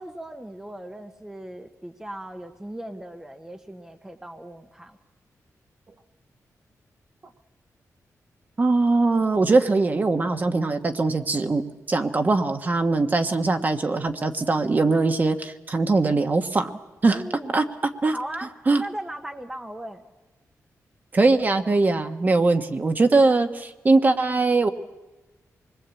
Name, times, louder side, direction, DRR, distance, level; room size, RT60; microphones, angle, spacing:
voice 1, 0.0-5.0 17.1-17.5 18.1-18.5 18.8-20.0, right 1 dB, 10° right, 6 dB, 1.1 m, -37 dB
voice 2, 8.6-11.6 11.9-16.7 17.0-17.2 17.5-17.6 18.0-18.1 18.7-18.8 21.1-24.7, right 3 dB, 30° right, 7 dB, 1.3 m, -21 dB
26.5 x 21.0 x 8.4 m, 1.1 s
wide cardioid pair, 175°, 6 cm